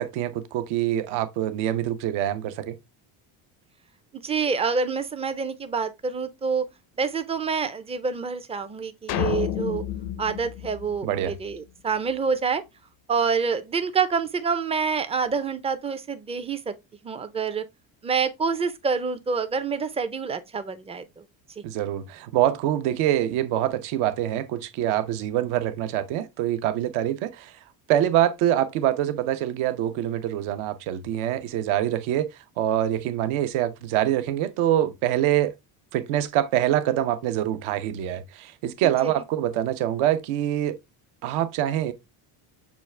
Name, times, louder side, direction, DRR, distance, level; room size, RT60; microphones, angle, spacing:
voice 1, 0.0-2.8 11.0-11.3 21.6-27.5 27.9-32.3 32.6-35.5 35.9-40.8 41.2-41.9, right 12 dB, 80° right, 0.8 m, -25 dB
voice 2, 4.1-6.7 7.0-9.8 10.2-12.6 13.1-16.7 17.0-17.6 18.0-21.2 21.6-21.7 38.8-39.1, right 5 dB, 15° right, 0.4 m, -27 dB
sound 1, 9.1-11.5, left 12 dB, 55° left, 0.5 m, -30 dB
6.2 x 2.4 x 3.1 m
cardioid pair, 105°, 48 cm